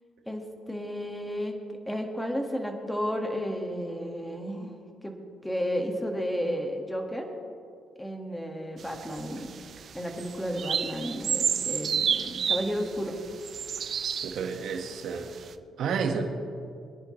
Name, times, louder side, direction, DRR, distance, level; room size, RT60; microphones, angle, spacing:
voice 1, 0.3-1.6 1.9-4.7 5.0-5.2 5.4-7.3 8.0-9.5 9.9-13.1, equal, 5° left, 2 dB, 1.9 m, -32 dB
sound 1, 8.8-14.8 15.3-15.4, right 7 dB, 55° right, 0.7 m, -31 dB
voice 2, 14.2-15.3 15.8-16.2, right 6 dB, 75° right, 4 dB, 1.7 m, -30 dB
23.5 x 10.5 x 3.3 m, 2.4 s
cardioid pair, 90°, 0 cm